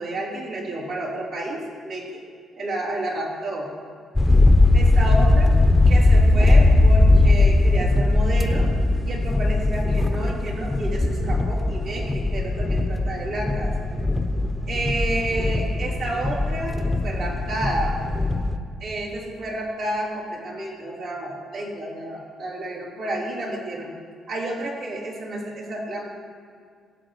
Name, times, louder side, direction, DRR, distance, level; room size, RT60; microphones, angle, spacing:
voice 1, 0.0-2.2 2.6-3.7 4.7-5.5 5.9-8.7 9.0-13.7 14.7-18.0 18.8-23.9 24.3-26.1, right 1 dB, 75° right, -6 dB, 3.6 m, -30 dB
sound 1, 4.2-18.6, left 2 dB, 10° left, 1.1 m, -19 dB
22.0 x 7.6 x 4.9 m, 2.1 s
cardioid pair, 90°, 0 cm